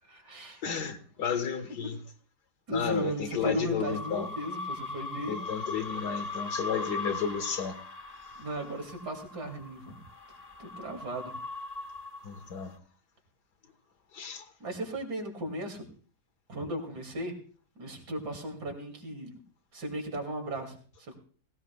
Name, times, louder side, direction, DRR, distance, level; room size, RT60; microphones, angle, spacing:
voice 1, 0.0-0.6 2.7-5.4 8.4-10.0 10.6-11.3 14.6-15.9 16.5-17.3 17.8-19.4 19.7-21.2, right 1 dB, 85° right, 3.2 m, -36 dB
voice 2, 0.6-2.0 2.7-4.3 5.3-7.8 12.2-12.7 14.1-14.5, left 7 dB, 90° left, 2.0 m, -32 dB
sound 1, 3.9-12.7, left 2 dB, 30° left, 0.8 m, -40 dB
18.5 x 17.5 x 2.3 m
omnidirectional pair, 1.7 m